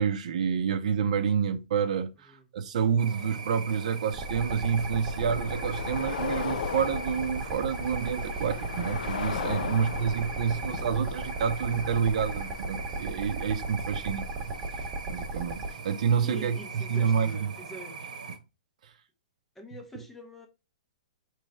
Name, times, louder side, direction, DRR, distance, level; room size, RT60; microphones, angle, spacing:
voice 1, 0.0-14.6 15.1-17.3, right 7 dB, 60° right, 0.7 m, -28 dB
sound 1, 3.0-18.4, right 5 dB, 75° right, 1.1 m, -42 dB
sound 2, 3.2-17.3, left 8 dB, 75° left, 0.4 m, -40 dB
sound 3, 4.1-15.7, right 2 dB, 20° right, 1.0 m, -36 dB
voice 2, 9.6-10.9 16.2-18.0 19.6-20.5, equal, 5° left, 0.5 m, -46 dB
4.7 x 3.3 x 3.2 m
hypercardioid pair, 170°, 4 cm